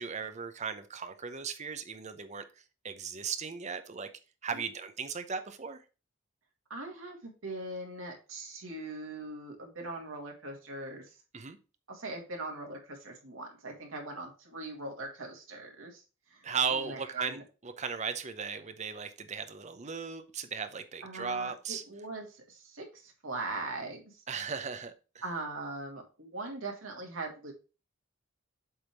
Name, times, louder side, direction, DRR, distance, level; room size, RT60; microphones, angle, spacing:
voice 1, 0.0-2.4 2.8-4.1 4.4-5.8 11.3-11.6 16.4-21.8 24.3-24.9, right 6 dB, 35° right, 0.7 m, -36 dB
voice 2, 6.7-11.1 11.9-17.4 21.0-24.2 25.2-27.5, right 2 dB, 80° right, 2.0 m, -41 dB
7.8 x 3.6 x 4.5 m
head